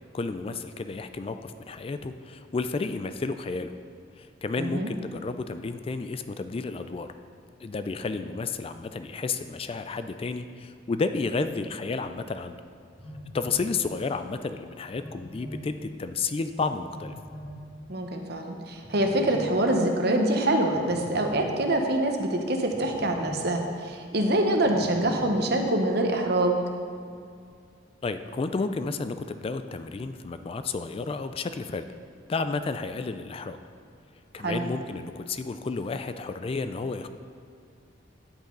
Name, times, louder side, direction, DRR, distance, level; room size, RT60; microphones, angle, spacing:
voice 1, 0.1-3.7 4.2-7.1 7.6-12.6 13.3-17.1 28.0-31.9 32.3-33.6 34.3-37.1, left 4 dB, 30° left, 9 dB, 0.3 m, -31 dB
voice 2, 4.6-4.9 17.9-26.6 34.4-34.6, right 1 dB, 55° right, 3 dB, 1.0 m, -25 dB
Telephone, 13.0-13.7 15.0-15.7 16.9-17.6 18.8-19.5 20.7-21.5 22.7-23.4 24.6-25.4, equal, 5° left, 1.5 m, -41 dB
10.0 x 8.5 x 3.8 m, 2.3 s
head